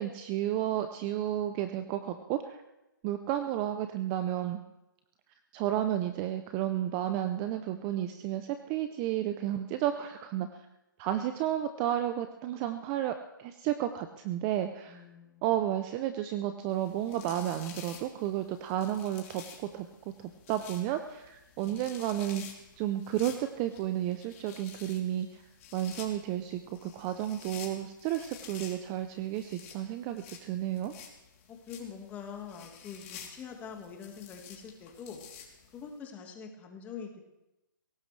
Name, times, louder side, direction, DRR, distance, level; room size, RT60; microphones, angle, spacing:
voice 1, 0.0-2.6 3.0-4.6 5.5-10.5 11.0-15.0 15.4-19.9 20.2-22.4 22.8-25.4 25.7-30.9, right 12 dB, 20° right, 9 dB, 0.5 m, -32 dB
voice 2, 14.9-15.4 21.6-21.8 31.5-35.4 35.7-37.3, left 6 dB, 15° left, 3 dB, 1.7 m, -44 dB
sound 1, 16.7-35.9, left 7 dB, 35° left, 3.1 m, -51 dB
22.0 x 17.5 x 3.3 m, 0.96 s
hypercardioid pair, 155°, 11 cm